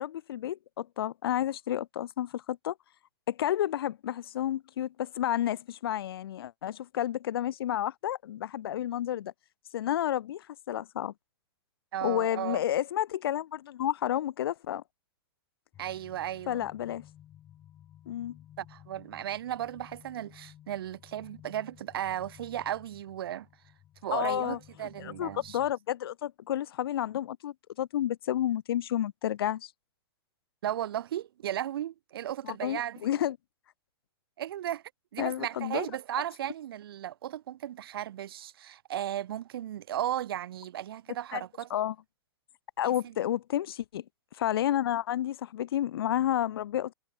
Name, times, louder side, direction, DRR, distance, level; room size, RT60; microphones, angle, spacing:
voice 1, 0.0-2.7 3.3-9.3 9.7-11.1 12.0-14.8 16.5-17.0 18.1-18.4 24.1-24.6 25.0-29.7 32.4-33.4 35.2-35.9 41.3-41.4 41.7-41.9 42.8-44.0 44.3-46.9, left 11 dB, 75° left, 1.0 m, -31 dB
voice 2, 11.9-12.6 15.8-16.7 18.6-23.5 24.0-25.6 30.6-33.1 34.4-34.8 35.1-41.7 43.0-43.1, right 12 dB, 70° right, 5.8 m, -35 dB
sound 1, 15.7-25.7, left 11 dB, 25° left, 7.9 m, -55 dB
hypercardioid pair, 150°, 13 cm